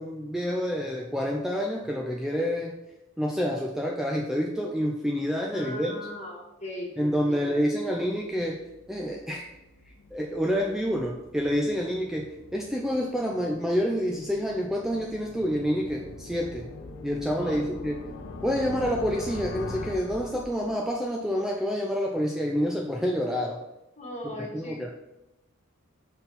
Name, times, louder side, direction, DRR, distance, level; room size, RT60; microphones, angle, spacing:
voice 1, 0.0-2.8 3.2-5.9 7.0-8.6 8.9-9.5 10.1-16.7 17.0-18.0 18.4-23.6 24.4-24.9, equal, ahead, -1 dB, 0.4 m, -28 dB
voice 2, 5.5-7.6 17.4-17.6 24.0-24.9, equal, 35° left, -3 dB, 1.6 m, -39 dB
sound 1, 8.3-21.0, left 3 dB, 85° left, 0.6 m, -43 dB
5.3 x 4.5 x 4.1 m, 0.93 s
head